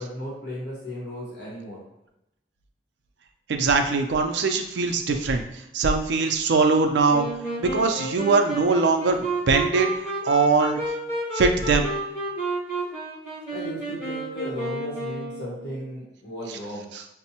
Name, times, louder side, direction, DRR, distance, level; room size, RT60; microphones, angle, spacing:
voice 1, 0.0-1.8 13.5-16.9, equal, 75° left, -6 dB, 1.1 m, -35 dB
voice 2, 3.5-5.4 5.7-7.3 7.6-9.9 10.2-10.8 11.3-11.9, right 4 dB, 85° right, 4 dB, 0.4 m, -21 dB
Wind instrument woodwind instrument, 7.1-15.8, right 2 dB, 25° left, 1.3 m, -31 dB
5.1 x 2.0 x 2.8 m, 0.87 s
head